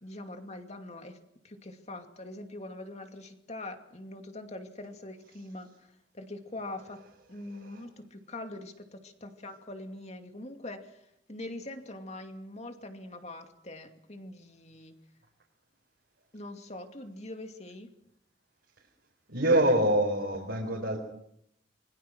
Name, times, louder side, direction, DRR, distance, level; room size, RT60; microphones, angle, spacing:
voice 1, 0.0-1.2 1.4-7.0 7.3-11.0 11.3-15.0 16.3-17.9, left 2 dB, 35° left, 6 dB, 2.4 m, -43 dB
voice 2, 7.5-7.8 19.3-21.0, right 1 dB, 65° right, -2 dB, 4.5 m, -26 dB
27.0 x 22.5 x 6.2 m, 0.75 s
head